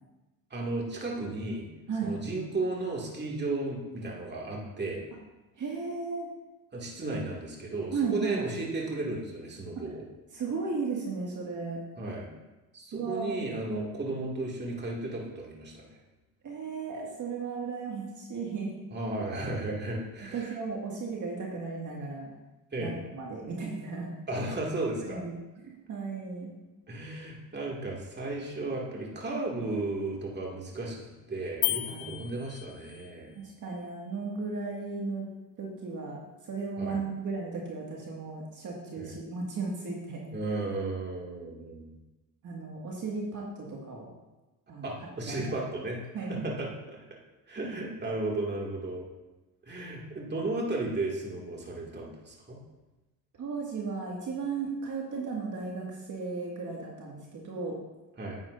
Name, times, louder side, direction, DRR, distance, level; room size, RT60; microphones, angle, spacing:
voice 1, 0.5-1.7 2.0-5.0 6.7-10.0 12.0-12.3 12.7-16.0 18.9-20.6 22.7-22.9 24.3-25.2 26.9-33.3 36.8-37.0 39.0-39.1 40.3-42.0 44.8-46.0 46.3-47.0 47.5-49.1 49.6-52.6 58.2-58.4, right 2 dB, 25° right, -3 dB, 2.3 m, -34 dB
voice 2, 1.9-2.2 5.6-6.3 7.9-8.4 9.8-9.9 10.3-11.8 12.9-13.4 16.4-18.7 20.3-22.3 22.8-24.1 25.0-25.3 25.6-26.5 31.9-32.3 33.4-35.3 35.6-40.2 42.4-44.1 44.7-44.9 45.2-45.4 46.1-46.4 53.4-57.8, right 4 dB, 50° right, -2 dB, 2.0 m, -35 dB
sound 1, 31.6-33.2, left 17 dB, 60° left, 0.5 m, -33 dB
9.8 x 8.8 x 2.6 m, 1.1 s
supercardioid pair, 80°, 39 cm